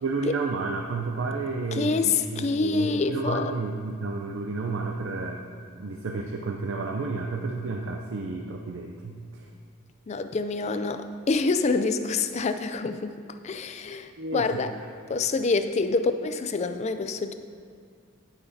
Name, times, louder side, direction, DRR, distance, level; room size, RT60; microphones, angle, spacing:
voice 1, 0.0-5.4 5.8-9.4 14.2-14.9, right 3 dB, 60° right, 2 dB, 0.5 m, -31 dB
voice 2, 1.7-3.5 10.1-13.2 13.4-14.7 15.1-17.3, left 4 dB, 30° left, 9 dB, 0.3 m, -26 dB
16.5 x 5.8 x 2.7 m, 2.2 s
head